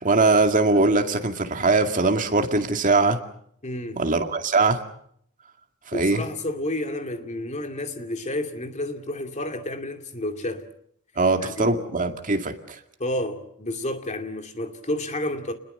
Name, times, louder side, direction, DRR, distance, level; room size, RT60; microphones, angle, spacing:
voice 1, 0.0-3.2 4.0-4.8 5.9-6.2 11.2-12.8, right 3 dB, 40° right, 2.2 m, -21 dB
voice 2, 3.6-4.0 5.9-10.7 11.4-11.8 13.0-15.5, left 1 dB, 35° left, 2.5 m, -30 dB
29.0 x 21.0 x 6.8 m
head